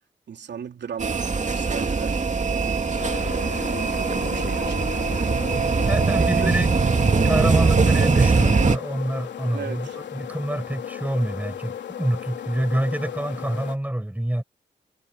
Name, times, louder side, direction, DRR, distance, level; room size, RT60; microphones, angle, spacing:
voice 1, 0.3-2.2 3.0-5.5 6.2-6.5 9.5-10.0, right 7 dB, 70° right, 3.2 m, -37 dB
sound 1, 1.0-8.8, right 4 dB, 40° right, 2.4 m, -21 dB
sound 2, 3.0-13.8, left 9 dB, 75° left, 3.2 m, -35 dB
voice 2, 5.9-6.7 7.2-14.4, right 1 dB, 10° right, 5.1 m, -26 dB
supercardioid pair, 50°, 19 cm